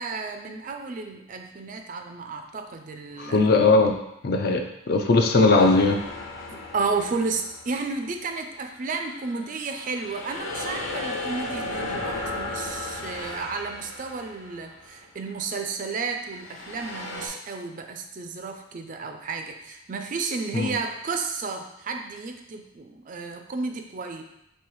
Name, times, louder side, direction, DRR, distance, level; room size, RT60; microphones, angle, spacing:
voice 1, 0.0-3.5 6.5-24.2, right 4 dB, 40° right, 5 dB, 0.3 m, -32 dB
voice 2, 3.2-3.9 4.2-6.0 20.5-20.7, left 3 dB, 50° left, 4 dB, 0.4 m, -19 dB
sound 1, 5.6-8.1 8.6-15.1 16.2-17.3, left 2 dB, 80° left, 0.8 m, -35 dB
5.4 x 2.7 x 3.0 m, 0.81 s
head